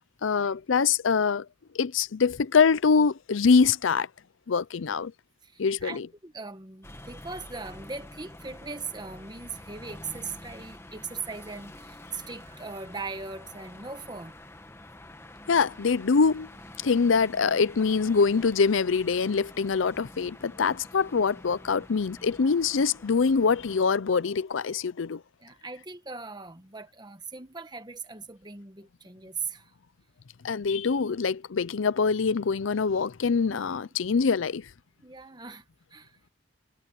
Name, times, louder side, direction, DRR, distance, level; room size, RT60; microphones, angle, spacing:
voice 1, 0.2-1.5 1.7-4.1 4.5-5.1 5.6-6.1 15.5-16.5 16.8-25.2 30.4-34.7, left 5 dB, 75° left, 0.5 m, -24 dB
voice 2, 5.4-14.4 22.4-22.5 25.4-29.7 33.5-33.6 35.0-36.2, right 4 dB, 20° right, 1.4 m, -40 dB
sound 1, 6.8-23.8, left 1 dB, 15° left, 1.4 m, -47 dB
head